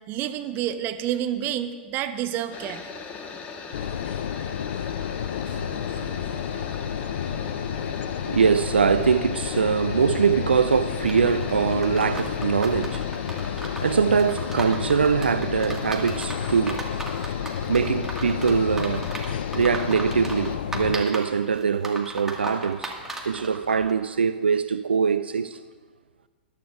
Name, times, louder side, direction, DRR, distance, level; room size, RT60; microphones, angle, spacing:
voice 1, 0.1-2.9, right 11 dB, 35° right, 0.9 m, -29 dB
sound 1, 2.5-20.6, left 5 dB, 30° left, 1.2 m, -40 dB
sound 2, 3.7-21.0, left 9 dB, 65° left, 0.4 m, -31 dB
voice 2, 5.4-13.1 13.4-16.9 17.7-19.1 19.5-22.9 23.2-25.6, right 6 dB, 80° right, 0.3 m, -23 dB
sound 3, 11.1-23.9, right 2 dB, 5° right, 1.7 m, -37 dB
21.0 x 11.5 x 2.4 m
figure-of-eight pair, 100°, 6 cm